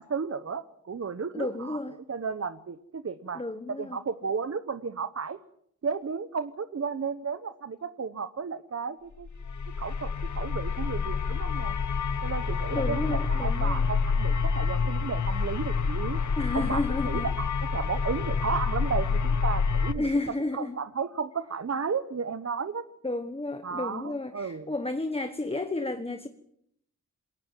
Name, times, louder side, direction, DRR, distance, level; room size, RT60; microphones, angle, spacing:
voice 1, 0.0-1.8 2.1-3.4 3.8-5.4 5.8-9.3 9.8-11.8 12.2-16.2 16.5-20.1 20.5-22.8 23.6-24.7, right 5 dB, 50° right, 12 dB, 1.0 m, -33 dB
voice 2, 1.3-2.0 3.3-4.0 12.7-13.9 16.4-17.3 20.0-20.8 23.0-26.3, left 2 dB, 20° left, 8 dB, 1.2 m, -32 dB
sound 1, 9.3-19.9, left 5 dB, 70° left, 1.2 m, -28 dB
21.0 x 18.5 x 7.4 m, 0.72 s
wide cardioid pair, 90°, 30 cm